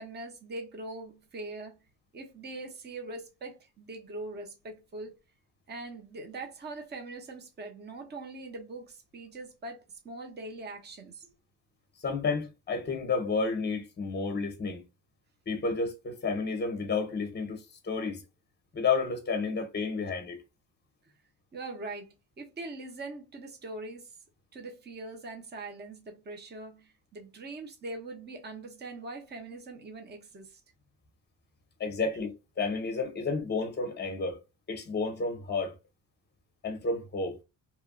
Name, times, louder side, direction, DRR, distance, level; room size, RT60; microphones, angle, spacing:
voice 1, 0.0-1.8 2.1-5.1 5.7-11.3 21.5-24.2 24.5-30.6, right 2 dB, 20° right, 0.7 m, -42 dB
voice 2, 12.0-14.8 15.5-18.2 18.7-20.4 31.8-34.4 34.7-35.7 36.6-37.4, left 4 dB, 20° left, 0.8 m, -31 dB
3.0 x 2.3 x 2.4 m
cardioid pair, 140°, 46 cm